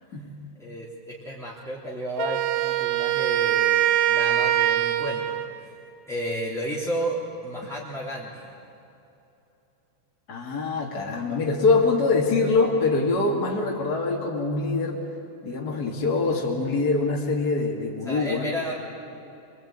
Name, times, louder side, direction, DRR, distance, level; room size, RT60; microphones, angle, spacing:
voice 1, 0.6-5.7 6.1-7.2 7.4-8.5 18.0-18.7, equal, ahead, -7 dB, 2.0 m, -32 dB
Wind instrument woodwind instrument, 2.2-5.5, right 12 dB, 80° right, 3.1 m, -23 dB
voice 2, 10.3-15.0 15.4-18.5, left 3 dB, 35° left, -2 dB, 1.6 m, -24 dB
24.0 x 22.5 x 8.9 m, 2.8 s
omnidirectional pair, 5.3 m